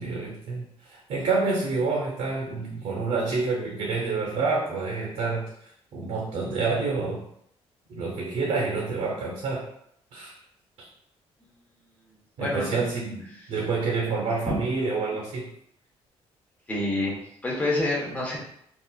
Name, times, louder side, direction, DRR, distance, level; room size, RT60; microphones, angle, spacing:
voice 1, 0.0-5.5 5.9-7.2 7.9-9.7 10.1-10.3 10.8-10.9 12.4-13.2 13.5-15.5, right 4 dB, 90° right, -2 dB, 0.7 m, -28 dB
voice 2, 12.4-12.9 14.5-14.6 16.7-18.4, left 1 dB, 15° left, -4 dB, 0.9 m, -27 dB
3.8 x 2.4 x 2.2 m, 0.71 s
cardioid pair, 150°, 11 cm